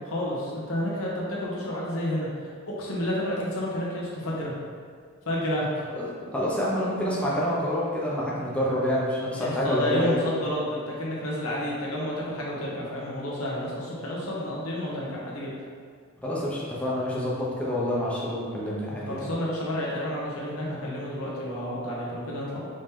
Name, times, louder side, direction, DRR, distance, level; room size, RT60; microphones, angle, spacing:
voice 1, 0.0-2.3 2.6-4.5 5.2-5.7 9.4-15.6 19.1-22.7, left 1 dB, 75° left, -5 dB, 1.1 m, -30 dB
voice 2, 6.0-10.2 16.2-19.3, left 1 dB, 5° left, -7 dB, 0.7 m, -27 dB
5.0 x 2.8 x 3.7 m, 2.1 s
head